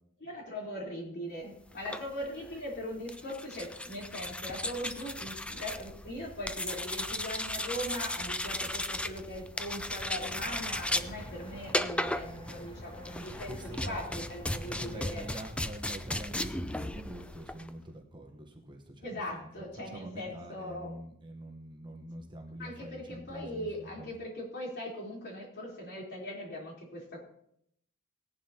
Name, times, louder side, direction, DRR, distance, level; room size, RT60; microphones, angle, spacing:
voice 1, 0.2-15.2 19.0-20.9 22.6-27.2, left 1 dB, 50° left, -3 dB, 3.8 m, -40 dB
sound 1, 1.7-17.7, left 1 dB, 5° left, 0.4 m, -36 dB
sound 2, 10.2-15.4, equal, 25° left, 2.3 m, -50 dB
voice 2, 13.5-14.0 14.7-19.1 19.4-19.5 19.9-24.1, right 1 dB, 20° right, 2 dB, 1.1 m, -45 dB
18.0 x 11.0 x 2.9 m, 0.73 s
head